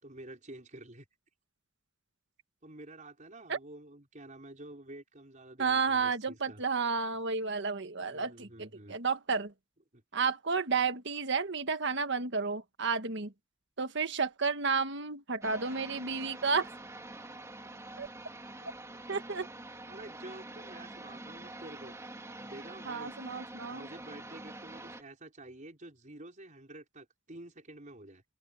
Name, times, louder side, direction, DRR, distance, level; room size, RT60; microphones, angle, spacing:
voice 1, 0.0-1.1 2.6-6.6 8.0-9.0 9.9-10.0 19.9-21.9 22.4-23.3 23.7-28.2, right 1 dB, 40° right, 5.0 m, -49 dB
voice 2, 5.6-9.5 10.1-13.3 13.8-16.7 18.0-18.1 19.1-19.5 22.8-23.9, right 5 dB, 60° right, 1.6 m, -31 dB
sound 1, 15.4-25.0, right 2 dB, 15° right, 2.7 m, -46 dB
open air
head